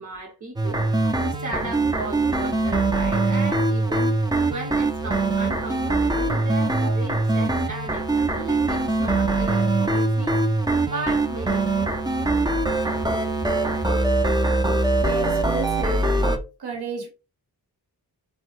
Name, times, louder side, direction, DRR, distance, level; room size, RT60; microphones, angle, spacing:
voice 1, 0.0-10.3 10.8-11.9 15.6-15.7, right 2 dB, 50° right, 0.7 m, -36 dB
sound 1, 0.6-16.4, right 2 dB, 10° right, 0.4 m, -22 dB
voice 2, 15.0-16.0 16.6-17.1, right 5 dB, 85° right, 0.9 m, -32 dB
3.2 x 2.0 x 3.0 m
wide cardioid pair, 115°, 38 cm